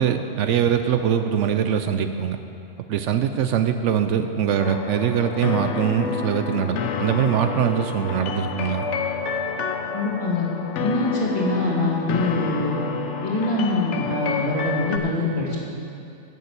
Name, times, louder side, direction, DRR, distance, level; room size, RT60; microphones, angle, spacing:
voice 1, 0.0-2.4 2.9-8.9, right 8 dB, 75° right, 8 dB, 0.9 m, -22 dB
sound 1, 4.6-15.0, left 5 dB, 70° left, 1.0 m, -29 dB
voice 2, 9.9-10.5 10.8-12.8 13.2-15.6, left 2 dB, 30° left, -6 dB, 2.4 m, -24 dB
10.5 x 6.8 x 8.2 m, 2.5 s
omnidirectional pair, 1.3 m